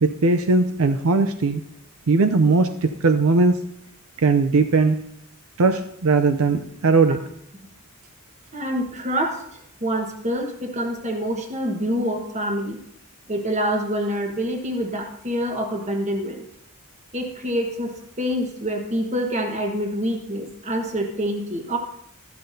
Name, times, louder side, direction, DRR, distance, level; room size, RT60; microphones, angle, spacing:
voice 1, 0.0-1.6 2.1-3.6 4.2-5.0 5.6-7.2, right 3 dB, 80° right, 8 dB, 0.6 m, -19 dB
voice 2, 8.5-12.8 13.3-16.4 17.1-21.8, equal, 35° right, 3 dB, 1.3 m, -26 dB
13.0 x 11.5 x 2.7 m, 0.73 s
head